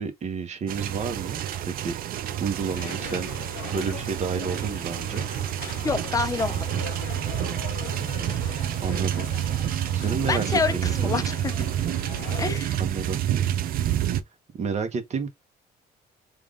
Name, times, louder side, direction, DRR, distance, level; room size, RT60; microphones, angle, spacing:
voice 1, 0.0-1.9 2.4-3.3 3.7-5.3 8.8-9.3 9.9-11.2 12.8-13.2 14.5-15.3, right 5 dB, 40° right, 1.1 m, -30 dB
sound 1, 0.7-14.2, right 11 dB, 60° right, 0.5 m, -28 dB
sound 2, 2.7-12.6, left 13 dB, 90° left, 0.4 m, -41 dB
voice 2, 5.8-6.7 10.2-11.5 12.4-12.8, left 4 dB, 20° left, 0.7 m, -27 dB
3.5 x 2.5 x 3.6 m
cardioid pair, 110°, 17 cm